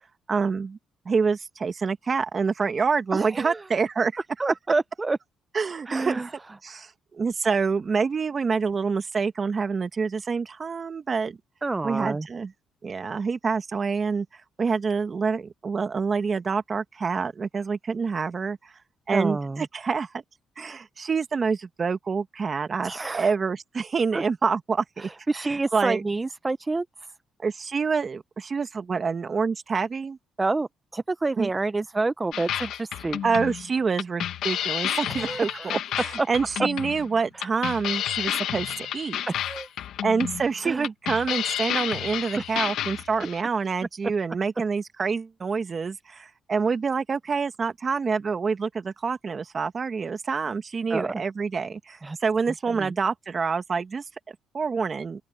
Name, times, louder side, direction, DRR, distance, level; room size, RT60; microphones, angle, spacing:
voice 1, 0.3-0.8 1.1-4.1 5.5-6.2 6.6-11.4 11.8-12.5 12.8-14.3 14.6-18.6 19.1-20.2 20.6-26.0 27.4-30.2 31.4-31.5 33.2-39.2 40.0-55.2, right 5 dB, 40° right, 1.7 m, -27 dB
voice 2, 3.1-3.6 4.4-5.2 5.9-6.3 11.6-12.3 19.1-19.6 22.8-23.3 24.1-24.2 25.0-26.8 30.4-30.7 30.9-33.2 35.1-35.7 36.2-36.3 37.3-37.4 39.3-39.7 40.6-40.9 42.4-42.7 50.9-51.1 52.0-52.2 52.7-52.9, right 3 dB, 20° right, 0.7 m, -28 dB
sound 1, 32.3-43.4, left 11 dB, 80° left, 1.1 m, -30 dB
open air
cardioid pair, 90°, 0 cm